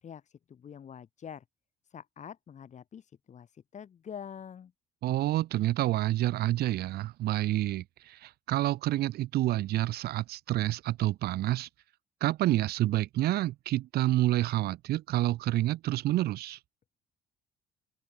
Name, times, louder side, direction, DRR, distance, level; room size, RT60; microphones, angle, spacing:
voice 1, 0.0-1.4 1.8-4.7, left 8 dB, 45° left, 4.3 m, -46 dB
voice 2, 5.0-11.7 12.2-16.6, right 15 dB, 70° right, 0.8 m, -28 dB
open air
cardioid pair, 110°, 17 cm